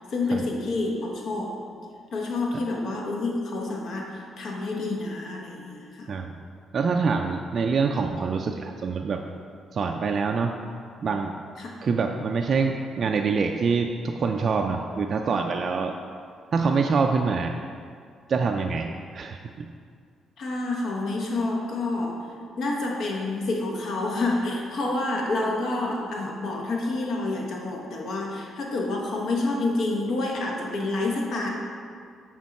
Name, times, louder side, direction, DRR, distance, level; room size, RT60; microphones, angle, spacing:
voice 1, 0.0-1.6 2.1-6.1 11.6-11.7 20.4-22.3 22.6-31.5, left 2 dB, 65° left, 0 dB, 1.0 m, -28 dB
voice 2, 6.7-9.2 9.7-10.6 11.0-11.3 11.8-15.9 16.5-17.5 18.3-19.7, right 5 dB, 50° right, 3 dB, 0.3 m, -25 dB
6.3 x 3.9 x 4.1 m, 2.1 s
cardioid pair, 90°, 0 cm